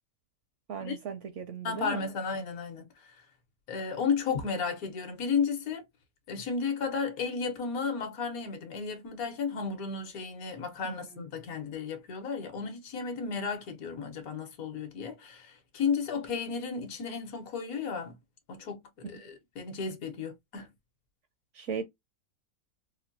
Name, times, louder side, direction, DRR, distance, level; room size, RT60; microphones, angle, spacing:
voice 1, 0.7-2.0 10.8-11.2 19.0-19.3 21.5-21.8, right 6 dB, 65° right, 0.8 m, -38 dB
voice 2, 1.6-3.1 3.7-5.8 6.3-18.2 18.5-20.7, left 5 dB, 70° left, 1.3 m, -33 dB
4.2 x 2.2 x 2.6 m
omnidirectional pair, 1.6 m